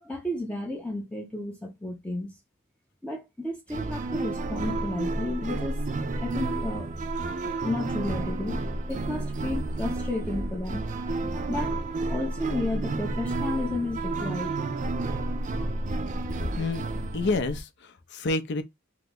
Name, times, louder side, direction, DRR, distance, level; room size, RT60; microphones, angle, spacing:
voice 1, 0.0-2.3 3.0-5.8 6.2-6.9 7.5-8.6 8.9-11.8 12.1-14.5 15.5-15.6, left 2 dB, 5° left, 0.6 m, -32 dB
sound 1, 3.7-17.6, right 2 dB, 35° right, 0.4 m, -31 dB
voice 2, 17.1-18.6, left 3 dB, 55° left, 0.5 m, -28 dB
2.9 x 2.1 x 3.6 m
head